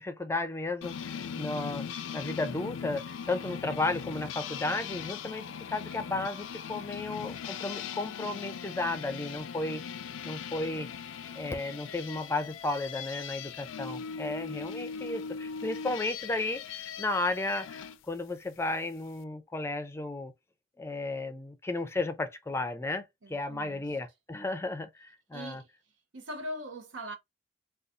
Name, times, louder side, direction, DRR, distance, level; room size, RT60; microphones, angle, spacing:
voice 1, 0.0-5.4 5.7-9.8 10.2-10.9 11.3-20.3 20.8-25.6, left 2 dB, 15° left, 0.4 m, -34 dB
sound 1, 0.8-18.0, left 6 dB, 85° left, 0.4 m, -40 dB
voice 2, 23.2-23.8 25.3-25.7 26.1-27.1, equal, 80° right, 0.8 m, -40 dB
3.9 x 2.3 x 2.5 m
head